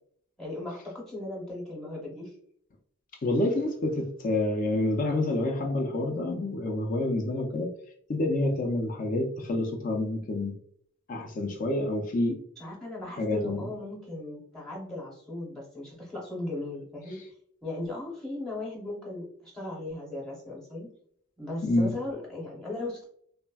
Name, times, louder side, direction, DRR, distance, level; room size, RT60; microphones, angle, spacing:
voice 1, 0.4-2.3 12.6-17.2 17.6-20.9 21.4-23.0, left 2 dB, 5° left, -3 dB, 0.7 m, -37 dB
voice 2, 3.2-7.7 8.1-10.5 11.1-12.4 13.2-13.6 21.6-21.9, left 2 dB, 40° left, 2 dB, 0.4 m, -28 dB
3.3 x 2.0 x 2.2 m, 0.63 s
head